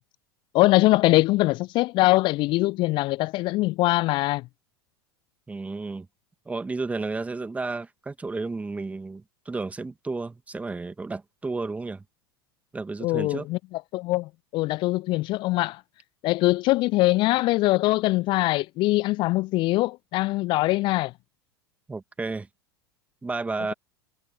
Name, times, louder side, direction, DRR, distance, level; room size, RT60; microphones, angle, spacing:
voice 1, 0.5-4.5 13.0-15.8 16.2-21.1, left 19 dB, 40° left, 0.7 m, -22 dB
voice 2, 5.5-6.1 6.5-12.0 12.7-13.5 21.9-22.5 23.2-23.7, right 3 dB, 10° right, 2.0 m, -32 dB
figure-of-eight pair, 85°, 13 cm